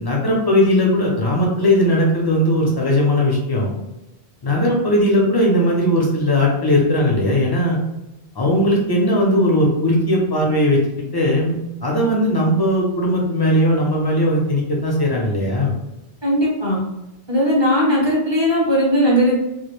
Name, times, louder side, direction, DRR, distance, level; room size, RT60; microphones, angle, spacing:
voice 1, 0.0-3.8 4.4-7.8 8.4-10.8 11.1-15.7, left 1 dB, 40° left, -3 dB, 0.4 m, -18 dB
voice 2, 16.2-16.8 17.3-19.4, equal, 30° right, -6 dB, 0.6 m, -17 dB
2.3 x 2.1 x 2.9 m, 0.92 s
omnidirectional pair, 1.1 m